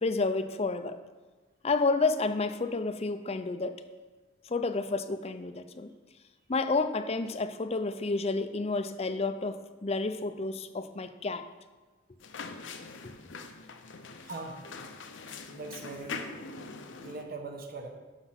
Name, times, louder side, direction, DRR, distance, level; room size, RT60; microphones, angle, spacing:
voice 1, 0.0-1.0 1.6-3.8 4.5-5.9 6.5-11.5, left 3 dB, 30° left, 10 dB, 0.5 m, -30 dB
sound 1, 12.2-17.2, left 4 dB, 70° left, 0.8 m, -43 dB
voice 2, 14.2-14.6 15.5-16.2 17.0-17.9, right 3 dB, 50° right, 3 dB, 1.1 m, -40 dB
11.5 x 5.7 x 5.9 m, 1.3 s
head